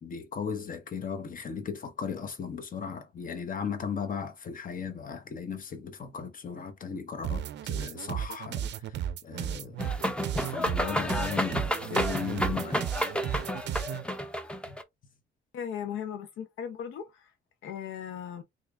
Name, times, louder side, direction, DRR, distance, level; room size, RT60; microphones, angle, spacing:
voice 1, 0.0-8.7 9.2-9.9 10.3-12.9 14.7-14.8, left 6 dB, 45° left, 0.9 m, -37 dB
sound 1, 7.2-14.0, right 9 dB, 60° right, 0.5 m, -34 dB
sound 2, 9.8-14.8, equal, 5° left, 0.6 m, -31 dB
voice 2, 15.5-17.3 17.6-18.4, left 8 dB, 80° left, 0.6 m, -37 dB
3.7 x 3.0 x 2.3 m
cardioid pair, 90°, 20 cm